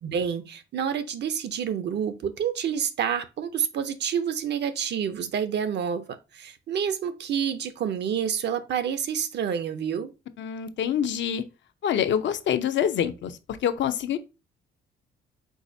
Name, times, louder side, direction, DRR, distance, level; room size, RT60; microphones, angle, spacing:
voice 1, 0.0-10.1, right 8 dB, 60° right, 0.6 m, -28 dB
voice 2, 10.4-11.4 11.8-14.2, left 9 dB, 65° left, 0.7 m, -26 dB
4.8 x 4.0 x 2.7 m
cardioid pair, 90°, 20 cm